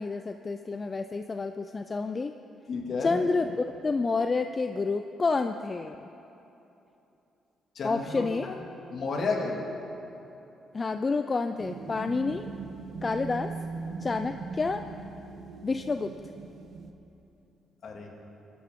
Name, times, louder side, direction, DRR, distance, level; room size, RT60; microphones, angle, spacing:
voice 1, 0.0-2.3 3.0-6.0 7.8-8.5 10.7-12.5 13.0-13.5 14.0-14.8 15.6-16.1, left 4 dB, 30° left, 8 dB, 0.4 m, -29 dB
voice 2, 2.7-3.2 7.8-8.5 8.9-9.6 17.8-18.1, left 4 dB, 60° left, 0 dB, 2.2 m, -31 dB
sound 1, 11.6-16.9, right 4 dB, 60° right, 1.0 m, -40 dB
22.0 x 12.0 x 3.7 m, 2.9 s
cardioid pair, 90°, 0 cm